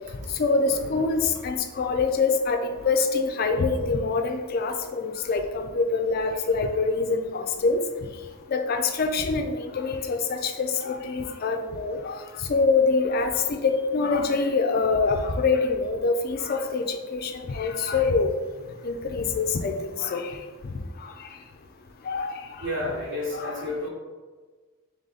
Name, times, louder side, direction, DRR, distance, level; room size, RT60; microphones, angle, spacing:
voice 1, 0.4-7.8 8.5-12.1 12.5-18.3 18.8-20.3 22.1-22.3 23.3-23.5, left 4 dB, 45° left, 5 dB, 0.3 m, -25 dB
voice 2, 22.6-23.9, left 1 dB, 55° right, -3 dB, 1.2 m, -31 dB
3.7 x 3.4 x 4.0 m, 1.4 s
head